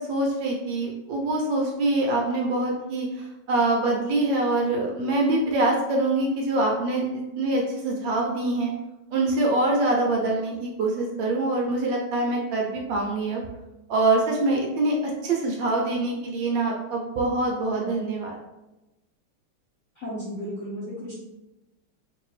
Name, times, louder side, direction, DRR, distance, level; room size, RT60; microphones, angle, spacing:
voice 1, 0.0-8.7 9.1-13.4 13.9-15.0 15.2-18.4, right 2 dB, 70° right, -1 dB, 1.2 m, -24 dB
voice 2, 20.0-21.1, equal, 55° left, -9 dB, 0.8 m, -34 dB
3.3 x 2.9 x 3.1 m, 1.0 s
omnidirectional pair, 2.3 m